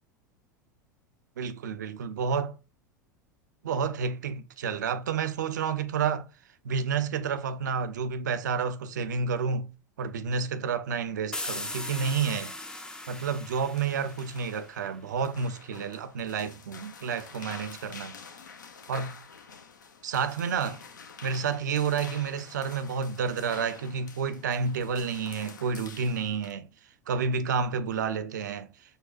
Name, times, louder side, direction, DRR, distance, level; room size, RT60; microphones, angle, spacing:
voice 1, 1.4-2.6 3.6-6.3 6.6-9.7 10.0-12.5 13.1-18.2 18.9-19.2 20.0-20.8 21.2-26.7 27.1-28.7, right 6 dB, 65° right, 0.4 m, -30 dB
sound 1, 11.3-14.9, left 2 dB, 5° left, 0.4 m, -39 dB
sound 2, 13.4-26.5, left 5 dB, 70° left, 0.5 m, -48 dB
6.4 x 2.2 x 2.4 m
figure-of-eight pair, 80°, 10 cm